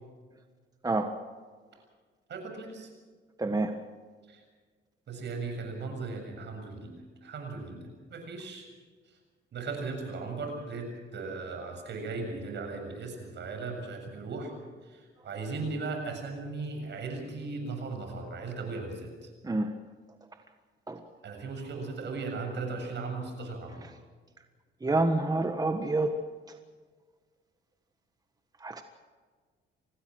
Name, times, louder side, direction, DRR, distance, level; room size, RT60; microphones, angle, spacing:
voice 1, 2.3-2.9 4.3-4.4 5.1-8.7 9.5-14.5 14.8-19.3 21.2-23.8, right 3 dB, 65° right, 4 dB, 7.2 m, -37 dB
voice 2, 24.8-26.1 28.6-28.8, right 2 dB, 20° right, 6 dB, 1.5 m, -27 dB
25.5 x 18.5 x 6.4 m, 1.5 s
cardioid pair, 90°, 20 cm